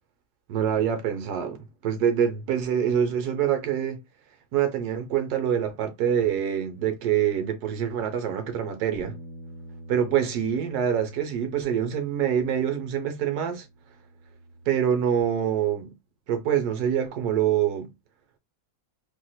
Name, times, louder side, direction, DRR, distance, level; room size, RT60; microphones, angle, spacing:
voice 1, 0.5-1.6 1.8-4.0 4.5-9.2 9.9-13.7 14.7-15.9 16.3-17.9, right 9 dB, 75° right, 1.2 m, -25 dB
Bass guitar, 9.0-15.2, right 1 dB, 20° left, 0.8 m, -46 dB
3.5 x 2.7 x 2.2 m
omnidirectional pair, 1.7 m